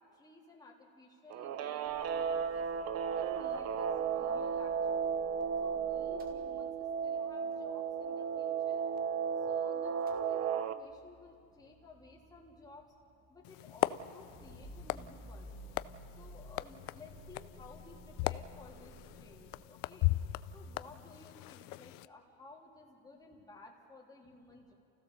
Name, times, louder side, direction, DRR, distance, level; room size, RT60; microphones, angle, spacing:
voice 1, 0.0-2.7 3.1-5.0 5.6-8.8 9.4-13.0 13.3-15.5 16.1-20.1 20.5-24.7, left 3 dB, 10° left, -3 dB, 3.4 m, -56 dB
Guitar, 1.3-10.7, right 7 dB, 40° right, 0.8 m, -34 dB
Motor vehicle (road) / Engine starting / Idling, 1.9-9.6 9.8-19.7, right 2 dB, 20° right, 2.2 m, -56 dB
sound 1, 13.4-22.1, left 17 dB, 55° left, 0.6 m, -38 dB
29.0 x 16.0 x 7.0 m, 2.8 s
cardioid pair, 140°, 39 cm